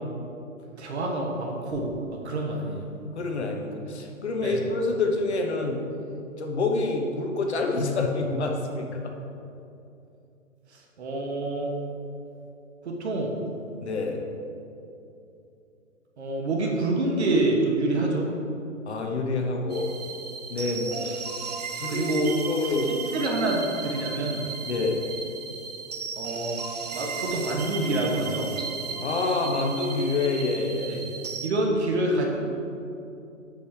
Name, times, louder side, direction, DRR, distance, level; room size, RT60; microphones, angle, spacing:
voice 1, 0.8-2.9 4.4-4.6 10.7-11.7 12.8-13.4 16.2-18.3 20.6-21.1 21.9-22.4 22.6-24.4 26.1-26.6 26.9-28.5 30.9-31.0 31.4-32.3, right 2 dB, 55° right, 0 dB, 1.3 m, -27 dB
voice 2, 3.1-5.8 6.4-9.1 13.8-14.2 18.9-19.9 20.5-21.1 21.8-22.9 24.7-25.0 29.0-31.0, left 3 dB, 55° left, 2 dB, 1.1 m, -27 dB
sound 1, 19.7-31.5, right 5 dB, 35° right, 0.4 m, -35 dB
6.9 x 5.4 x 4.5 m, 2.7 s
figure-of-eight pair, 130°, 40 cm